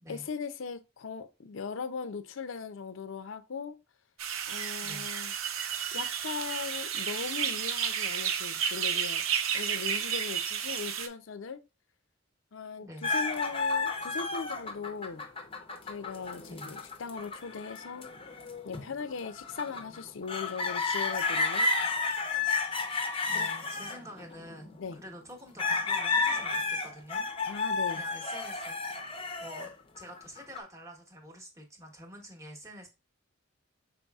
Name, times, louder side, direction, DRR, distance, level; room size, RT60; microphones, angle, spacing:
voice 1, 0.1-3.8 4.5-5.3 5.9-9.2 9.5-11.6 12.5-15.3 15.8-18.1 18.6-21.7 23.3-23.5 24.8-25.0 27.5-28.0, left 5 dB, 75° left, 0.5 m, -39 dB
sound 1, 4.2-11.1, right 8 dB, 90° right, 0.6 m, -32 dB
voice 2, 12.8-13.1 16.5-16.7 23.3-27.3 27.9-29.0 29.4-32.9, equal, 15° right, 1.0 m, -48 dB
sound 2, 13.0-25.0 25.6-30.6, left 3 dB, 25° left, 0.6 m, -32 dB
5.4 x 4.1 x 2.3 m
head